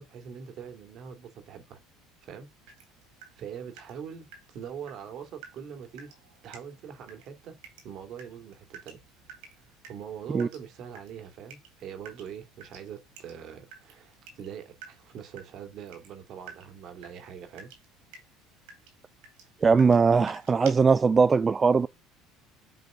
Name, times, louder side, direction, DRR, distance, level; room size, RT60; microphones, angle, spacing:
voice 1, 0.0-1.8 2.2-2.5 3.4-6.1 6.4-7.5 7.8-9.0 9.5-17.7, right 8 dB, 60° right, 2.4 m, -43 dB
Water tap faucet / Drip, 2.7-20.7, right 6 dB, 80° right, 3.6 m, -53 dB
voice 2, 19.6-21.9, right 5 dB, 25° right, 0.3 m, -20 dB
8.2 x 4.0 x 3.6 m
supercardioid pair, 90°, 0 cm